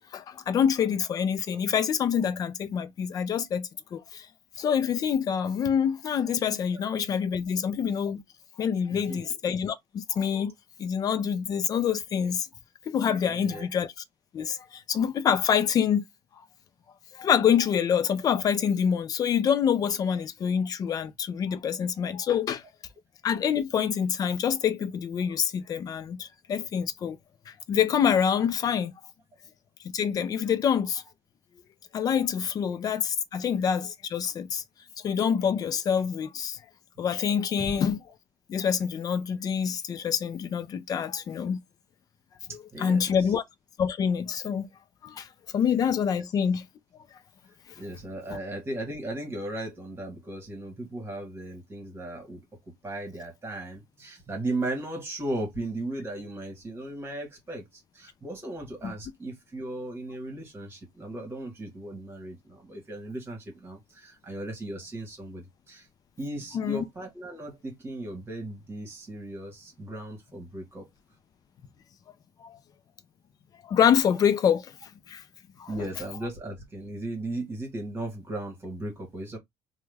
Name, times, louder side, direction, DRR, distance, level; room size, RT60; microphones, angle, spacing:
voice 1, 0.1-4.3 4.6-8.2 8.6-10.5 10.8-12.5 12.9-13.9 14.3-16.0 17.1-22.6 23.2-27.2 27.5-28.9 29.9-31.0 31.9-34.6 35.0-36.6 37.0-38.0 38.5-41.6 42.8-43.4 43.8-44.7 45.0-45.3 45.5-46.6 58.8-58.9 66.5-66.8 72.4-72.6 73.6-74.7 75.1-75.2 75.6-75.7, left 8 dB, 40° left, 0.5 m, -26 dB
voice 2, 8.9-9.4 13.2-13.7 42.7-43.3 47.8-52.4 52.8-65.9 66.2-70.9 75.7-79.4, right 1 dB, 25° right, 1.5 m, -36 dB
3.0 x 2.3 x 3.3 m
cardioid pair, 135°, 10 cm